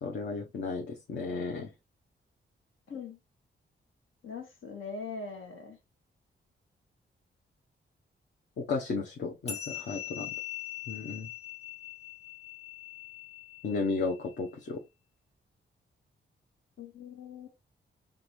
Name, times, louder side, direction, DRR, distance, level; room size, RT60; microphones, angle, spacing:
voice 1, 0.0-1.7 8.6-10.3 10.9-11.3 13.6-14.8, left 4 dB, 60° left, 0.9 m, -34 dB
voice 2, 2.9-3.2 4.2-5.8 16.8-17.5, left 4 dB, 80° left, 1.6 m, -41 dB
sound 1, 9.5-14.3, left 11 dB, 30° left, 1.1 m, -42 dB
3.8 x 3.5 x 3.1 m
cardioid pair, 100°, 20 cm